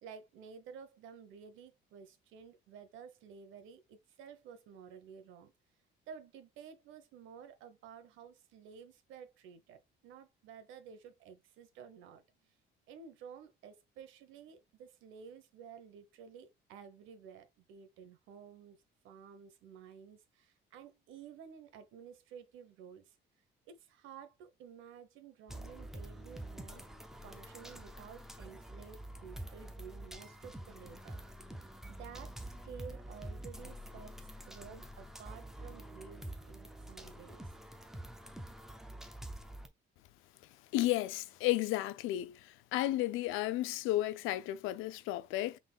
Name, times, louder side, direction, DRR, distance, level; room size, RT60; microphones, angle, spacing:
voice 1, 0.0-5.5 6.1-12.6 12.9-18.8 19.0-23.2 23.7-26.8 27.2-31.2 31.9-37.4, right 7 dB, 80° right, 1.1 m, -53 dB
sound 1, 25.5-39.7, right 1 dB, ahead, 0.5 m, -47 dB
voice 2, 40.7-42.4 42.7-45.6, left 15 dB, 90° left, 0.5 m, -33 dB
5.6 x 3.8 x 2.3 m
cardioid pair, 175°, 20 cm